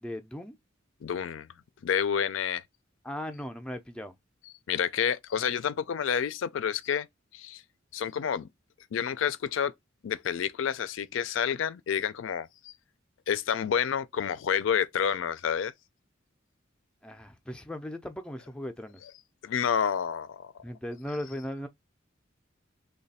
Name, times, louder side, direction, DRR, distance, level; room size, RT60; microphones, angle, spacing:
voice 1, 0.0-0.6 3.0-4.2 17.0-19.0 20.6-21.7, left 1 dB, 5° left, 0.4 m, -37 dB
voice 2, 1.0-1.5 1.8-2.6 4.7-7.1 7.3-7.6 7.9-8.5 8.9-9.7 10.0-12.7 13.3-15.7 19.4-20.5, left 7 dB, 75° left, 0.4 m, -29 dB
3.1 x 2.2 x 4.1 m
head